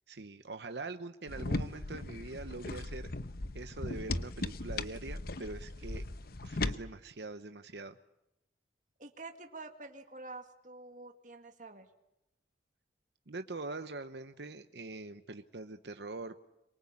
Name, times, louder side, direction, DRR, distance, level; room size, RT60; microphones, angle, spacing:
voice 1, 0.1-3.1 3.5-6.0 6.4-8.0 13.3-16.4, right 3 dB, 70° right, 8 dB, 0.9 m, -43 dB
sound 1, 1.3-6.8, left 2 dB, 55° left, 0.9 m, -38 dB
voice 2, 9.0-11.9, right 3 dB, 45° right, 5 dB, 2.0 m, -48 dB
24.0 x 23.5 x 8.7 m, 0.87 s
head